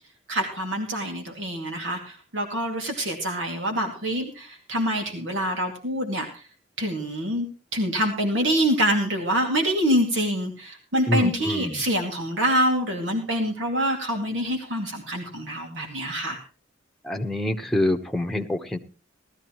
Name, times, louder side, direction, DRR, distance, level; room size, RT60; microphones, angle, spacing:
voice 1, 0.3-6.4 6.8-7.5 7.7-16.4, equal, 85° right, 2 dB, 2.3 m, -26 dB
voice 2, 11.1-11.8 17.0-18.8, left 1 dB, ahead, 4 dB, 1.0 m, -26 dB
18.5 x 13.0 x 3.0 m, 0.35 s
head